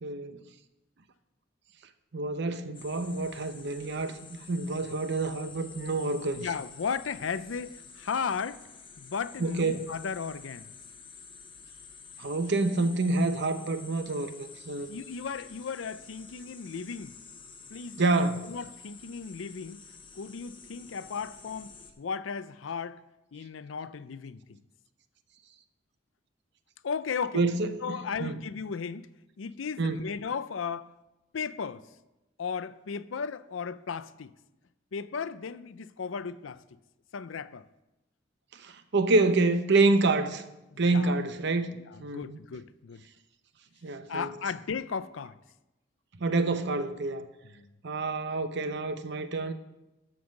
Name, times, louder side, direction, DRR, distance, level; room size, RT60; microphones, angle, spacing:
voice 1, 0.0-0.4 2.1-6.5 9.4-9.9 12.2-14.9 18.0-18.5 27.3-28.4 29.8-30.0 38.5-40.4 40.8-41.7 42.0-42.4 43.8-44.3 46.2-47.3 47.8-49.5, right 3 dB, 65° right, 0.8 m, -27 dB
sound 1, 2.7-21.9, left 5 dB, 25° left, 1.0 m, -49 dB
voice 2, 6.4-8.6 9.0-10.7 14.9-17.1 17.7-19.8 20.2-23.0 23.3-24.6 26.8-27.4 27.8-29.1 29.4-30.9 31.3-31.8 32.4-34.3 34.9-36.6 37.1-37.7 40.7-41.2 41.9-43.0 44.1-45.4 47.6-47.7, left 6 dB, 80° left, 0.5 m, -35 dB
13.0 x 5.5 x 6.4 m
head